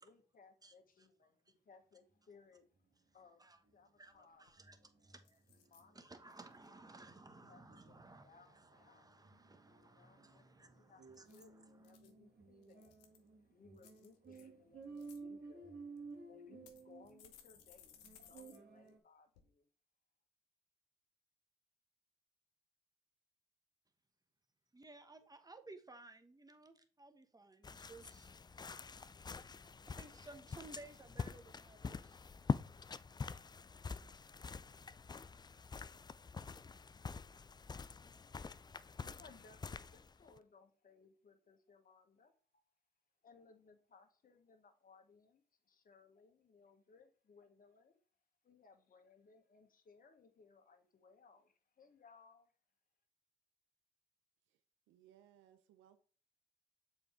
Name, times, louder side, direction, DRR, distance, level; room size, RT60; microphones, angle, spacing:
voice 1, 0.0-2.7 3.1-3.4 3.7-4.5 4.8-5.2 5.7-6.1 6.7-7.0 7.5-7.9 8.2-9.1 9.8-10.4 10.7-13.0 13.4-15.8 16.2-19.7 38.2-42.6 43.2-48.0 48.4-52.5, left 5 dB, 45° left, 1.4 m, -65 dB
voice 2, 0.6-1.1 3.4-3.6 4.0-5.4 5.9-11.9 24.7-28.3 29.9-32.2, right 2 dB, 20° right, 1.2 m, -58 dB
sound 1, 3.7-3.8 4.1-4.2 4.6-19.0, right 4 dB, 50° right, 1.6 m, -56 dB
sound 2, 4.1-4.2 4.5-4.8 5.2-5.8 6.3-6.7 11.1-12.1 12.6-13.3 13.8-14.4 14.8-15.2 16.0-16.1 16.7-18.6 18.9-19.0 19.3-19.4, left 9 dB, 85° left, 0.7 m, -63 dB
sound 3, 27.6-40.4, left 5 dB, 20° left, 0.4 m, -45 dB
voice 3, 54.9-56.0, right 11 dB, 75° right, 0.7 m, -66 dB
6.8 x 4.4 x 3.6 m
hypercardioid pair, 45°, 20 cm